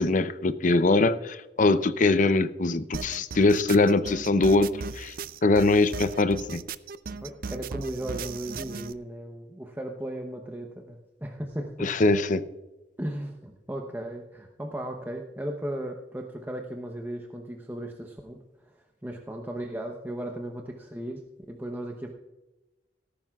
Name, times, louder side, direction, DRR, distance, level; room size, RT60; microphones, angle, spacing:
voice 1, 0.0-4.7 5.0-5.1 5.4-6.6 11.8-12.4, left 3 dB, 45° left, 0.6 m, -22 dB
sound 1, 2.9-8.9, right 5 dB, 55° right, 0.5 m, -37 dB
voice 2, 7.2-11.9 13.0-22.1, right 1 dB, 10° right, 0.8 m, -36 dB
17.5 x 13.5 x 2.4 m
head